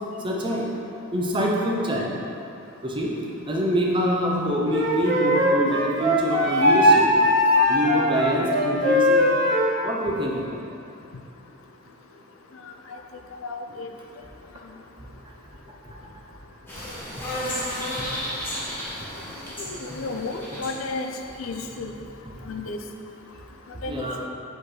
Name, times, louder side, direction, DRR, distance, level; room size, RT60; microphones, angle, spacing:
voice 1, 0.2-0.7 1.1-2.1 2.8-3.1 3.5-7.1 7.7-9.2 9.8-10.6 18.0-18.1 20.5-20.6 23.9-24.2, equal, 25° right, -2 dB, 0.6 m, -25 dB
Wind instrument woodwind instrument, 4.7-9.8, left 1 dB, 55° right, 1.1 m, -20 dB
voice 2, 13.4-13.9 19.6-21.1 21.4-21.9 22.5-22.8 23.8-24.3, left 3 dB, 80° left, 5 dB, 0.5 m, -32 dB
sound 1, 16.7-21.6, left 1 dB, 10° left, 1.2 m, -33 dB
5.1 x 3.9 x 4.8 m, 2.6 s
head